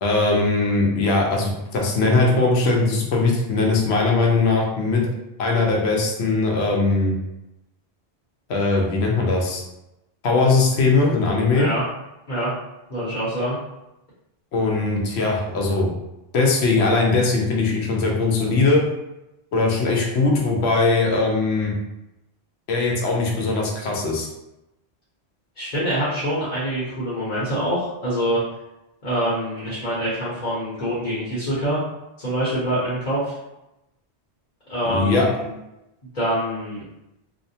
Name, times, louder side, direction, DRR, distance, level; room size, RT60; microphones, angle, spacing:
voice 1, 0.0-5.1 5.4-7.1 8.5-9.6 10.2-11.7 14.5-15.9 16.3-18.8 19.5-21.7 22.7-24.3 34.9-35.3, left 3 dB, 75° left, -1 dB, 0.9 m, -20 dB
voice 2, 11.5-11.8 12.3-12.5 12.9-13.6 25.6-28.4 29.0-31.8 32.2-33.3 34.7-35.5 36.1-36.8, equal, 45° left, -8 dB, 0.9 m, -25 dB
2.6 x 2.1 x 2.7 m, 0.92 s
omnidirectional pair, 1.1 m